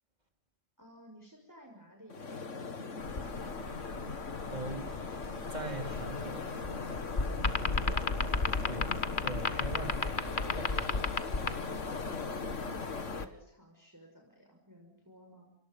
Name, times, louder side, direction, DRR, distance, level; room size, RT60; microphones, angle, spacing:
voice 1, 0.8-3.8 4.4-5.0 7.5-8.2 12.5-15.6, equal, 10° right, 1 dB, 6.2 m, -55 dB
sound 1, 2.1-13.2, left 4 dB, 55° left, 2.2 m, -40 dB
sound 2, 3.0-13.3, left 3 dB, 35° left, 1.6 m, -35 dB
voice 2, 4.5-4.9 5.5-6.5 8.7-11.0, right 1 dB, 30° right, 5 dB, 3.7 m, -41 dB
29.0 x 26.5 x 5.5 m, 0.68 s
omnidirectional pair, 1.5 m